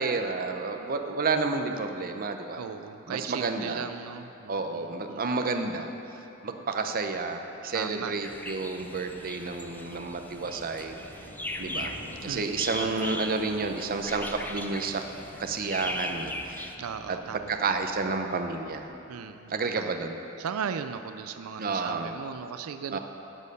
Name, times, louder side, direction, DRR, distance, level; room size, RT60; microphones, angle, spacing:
voice 1, 0.0-2.6 3.1-3.8 4.5-5.9 6.4-11.0 11.6-11.9 12.2-15.0 15.4-16.7 17.5-18.9 19.5-20.1 21.6-22.1 22.9-23.0, right 4 dB, 45° right, 6 dB, 0.7 m, -30 dB
voice 2, 2.6-5.2 7.7-8.2 12.3-13.1 16.8-17.6 19.1-20.1 20.4-23.0, right 7 dB, 90° right, 9 dB, 0.4 m, -37 dB
Thunder, 7.7-18.9, left 1 dB, 65° left, 1.5 m, -49 dB
sound 1, 8.2-16.7, left 1 dB, 10° left, 0.5 m, -39 dB
15.0 x 6.4 x 5.4 m, 3.0 s
head